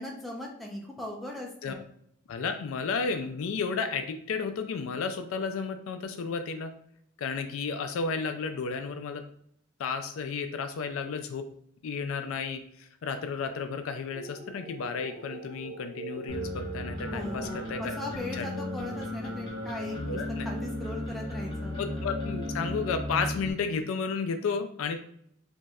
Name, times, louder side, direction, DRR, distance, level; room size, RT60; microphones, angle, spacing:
voice 1, 0.0-1.8 17.1-21.8, left 1 dB, ahead, -2 dB, 0.5 m, -39 dB
voice 2, 2.3-6.7 7.2-9.2 9.8-11.5 11.8-17.9 18.4-18.5 20.1-20.5 21.8-25.0, left 5 dB, 75° left, 8 dB, 0.3 m, -32 dB
sound 1, 14.1-23.0, right 1 dB, 65° right, 0.8 m, -42 dB
sound 2, 16.3-23.5, left 1 dB, 25° left, 1.0 m, -36 dB
3.0 x 2.6 x 2.3 m, 0.69 s
head